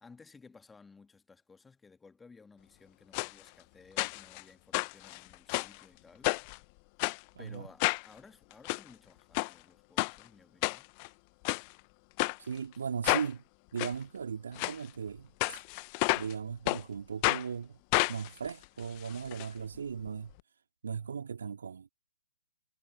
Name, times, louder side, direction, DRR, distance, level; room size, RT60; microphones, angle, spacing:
voice 1, 0.0-6.3 7.4-10.9, left 4 dB, 10° left, 1.6 m, -57 dB
sound 1, 3.1-3.3 4.0-4.4 4.7-5.8 6.2-6.6 7.0-7.2 7.8-8.1 8.5-8.8 9.3-9.5 10.0-10.1 10.6-11.1 11.4-11.6 12.2-12.4 13.0-13.3 13.8-13.9 14.6-14.8 15.4-16.3 16.7-16.8 17.2-17.4 17.9-19.5 19.7-19.8 20.1-20.2, left 33 dB, 30° left, 0.5 m, -30 dB
voice 2, 7.3-7.7 12.4-13.4 13.7-15.6 16.1-17.8 18.1-20.3 20.8-21.9, right 6 dB, 65° right, 2.3 m, -38 dB
figure-of-eight pair, 130°, 0 cm